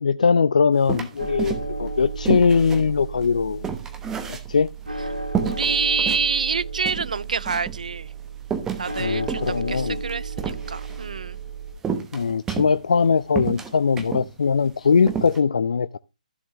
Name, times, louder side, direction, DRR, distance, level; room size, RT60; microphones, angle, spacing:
voice 1, 0.0-3.7 4.5-4.7 9.0-10.0 12.1-15.9, left 5 dB, 60° left, 0.4 m, -21 dB
sound 1, 0.9-1.9 2.3-4.9 5.4-6.2 6.6-6.7 6.9-7.8 8.4-11.0 11.8-13.1 13.4-14.3 14.7-14.8 15.1-15.4, right 6 dB, 10° right, 1.0 m, -30 dB
sound 2, 1.2-11.7, right 4 dB, 85° right, 3.3 m, -33 dB
voice 2, 5.4-8.1 8.8-11.4, right 5 dB, 60° right, 0.4 m, -27 dB
14.0 x 7.1 x 3.0 m
figure-of-eight pair, 140°, 5 cm